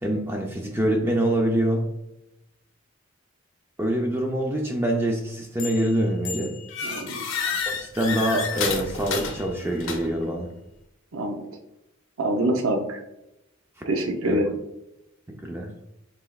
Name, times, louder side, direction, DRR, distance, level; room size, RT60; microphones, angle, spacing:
voice 1, 0.0-1.8 3.8-6.5 7.7-10.5 14.2-14.4 15.4-15.7, right 1 dB, 10° right, 1 dB, 0.4 m, -25 dB
sound 1, 5.6-5.9 6.2-10.3, left 5 dB, 65° left, 0.7 m, -31 dB
voice 2, 6.8-7.2 11.1-11.4 12.2-13.0 13.9-14.5, right 1 dB, 75° right, 3 dB, 0.6 m, -25 dB
5.5 x 3.4 x 2.3 m, 0.88 s
head